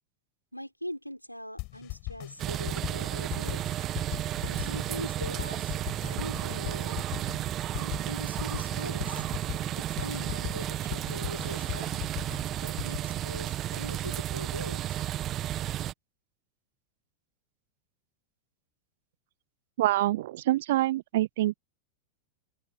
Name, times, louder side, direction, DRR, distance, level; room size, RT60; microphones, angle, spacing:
voice 1, 0.5-3.6 4.4-5.7 6.0-7.0 7.7-9.2 10.0-11.9 12.6-15.0, equal, 90° left, 5.0 m, -41 dB
sound 1, 1.6-13.0, left 28 dB, 45° left, 5.5 m, -39 dB
sound 2, 2.4-15.9, right 12 dB, 30° right, 1.4 m, -33 dB
voice 2, 19.8-21.6, right 15 dB, 55° right, 0.6 m, -26 dB
open air
figure-of-eight pair, 90°, 0 cm